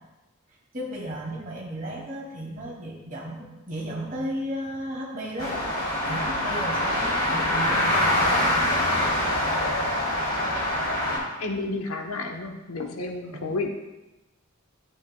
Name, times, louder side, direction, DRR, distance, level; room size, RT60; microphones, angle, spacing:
voice 1, 0.7-8.8 13.2-13.5, equal, 40° right, -4 dB, 2.3 m, -35 dB
sound 1, 5.4-11.2, left 1 dB, 40° left, 3.1 m, -24 dB
voice 2, 11.4-13.7, left 3 dB, 80° left, 4 dB, 0.9 m, -31 dB
11.5 x 8.0 x 2.2 m, 1.0 s
head